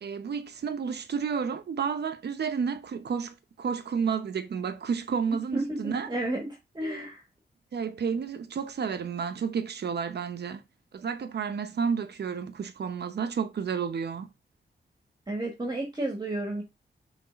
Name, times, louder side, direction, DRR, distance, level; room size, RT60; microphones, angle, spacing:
voice 1, 0.0-6.1 6.8-7.0 7.7-10.6 10.9-14.3, right 6 dB, 75° right, 0.8 m, -31 dB
voice 2, 5.3-6.5 6.7-7.2 15.3-16.6, right 1 dB, 25° right, 1.6 m, -32 dB
5.7 x 3.4 x 5.2 m
wide cardioid pair, 110°, 17 cm